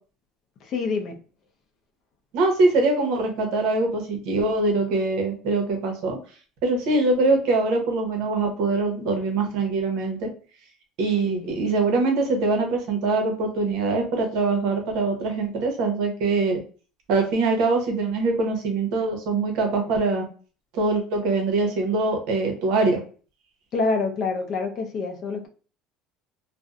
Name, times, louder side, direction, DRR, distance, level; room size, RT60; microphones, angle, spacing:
voice 1, 0.6-1.2 11.2-11.5 23.7-25.5, left 4 dB, 40° left, 4 dB, 0.5 m, -27 dB
voice 2, 2.3-6.2 6.6-10.3 11.0-16.6 17.1-20.2 20.7-23.0, right 3 dB, 60° right, 3 dB, 0.8 m, -23 dB
2.6 x 2.0 x 2.4 m, 0.39 s
cardioid pair, 160°, 0 cm